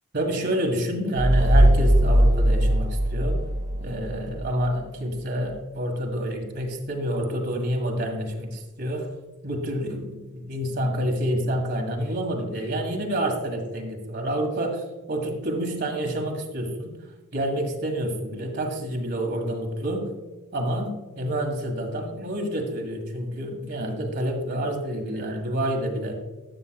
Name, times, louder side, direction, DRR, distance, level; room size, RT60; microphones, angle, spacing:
voice 1, 0.1-3.4 3.8-9.1 9.4-16.9 17.3-20.1 20.5-26.2, equal, 50° right, 2 dB, 1.6 m, -28 dB
sound 1, 1.2-4.5, right 1 dB, 15° right, 1.2 m, -20 dB
12.5 x 7.2 x 2.3 m, 1.2 s
head